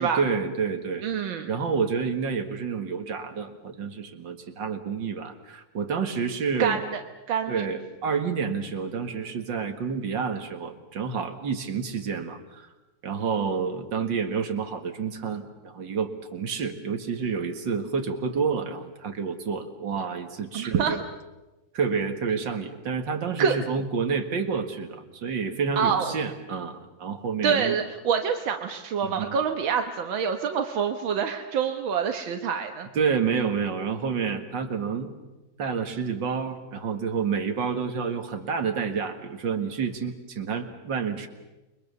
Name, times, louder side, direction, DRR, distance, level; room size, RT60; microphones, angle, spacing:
voice 1, 0.0-1.0 1.5-6.8 7.5-12.7 13.0-21.0 21.7-27.8 29.0-29.4 32.9-35.1 35.6-41.3, right 6 dB, 70° right, 5 dB, 2.6 m, -29 dB
voice 2, 1.0-1.5 6.6-7.0 7.3-7.7 20.5-21.0 23.4-23.6 25.8-26.1 27.4-32.9, right 7 dB, 85° right, 5 dB, 2.0 m, -26 dB
29.0 x 22.5 x 7.0 m, 1.1 s
omnidirectional pair, 2.1 m